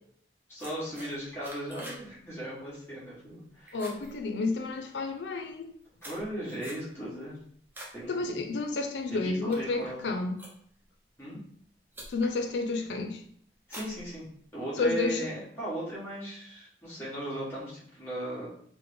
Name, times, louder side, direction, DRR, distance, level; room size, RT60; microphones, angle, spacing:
voice 1, 0.5-3.8 6.0-7.4 7.9-8.4 9.1-10.0 11.2-11.4 13.7-14.2 14.5-18.5, equal, 15° left, -9 dB, 1.2 m, -37 dB
sound 1, 0.6-2.1 2.4-2.7 3.1-3.4 3.7-4.9 5.5-8.0 8.4-8.7 9.2-10.9 11.6-11.7 11.9-12.4 12.8-13.2 13.6-14.6, right 1 dB, 10° right, 0.6 m, -47 dB
voice 2, 3.7-5.8 8.1-10.4 12.1-13.2 14.8-15.3, left 3 dB, 85° left, 5 dB, 0.5 m, -31 dB
3.3 x 2.0 x 3.4 m, 0.63 s
head